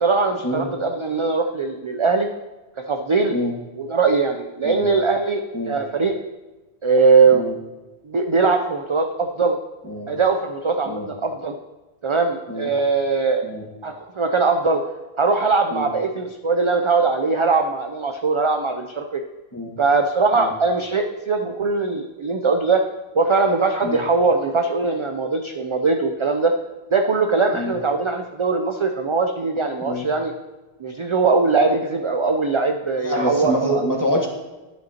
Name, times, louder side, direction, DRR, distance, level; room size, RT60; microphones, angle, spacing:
voice 1, 0.0-2.3 2.9-3.4 3.8-6.1 6.8-7.4 8.0-9.6 10.1-11.5 12.0-13.5 13.8-14.8 15.2-19.2 19.8-22.8 23.1-26.5 26.9-30.3 30.8-33.8, right 4 dB, 40° right, 4 dB, 0.4 m, -20 dB
voice 2, 33.0-34.3, equal, 20° left, -1 dB, 1.4 m, -26 dB
11.5 x 8.9 x 2.9 m, 1.1 s
omnidirectional pair, 1.0 m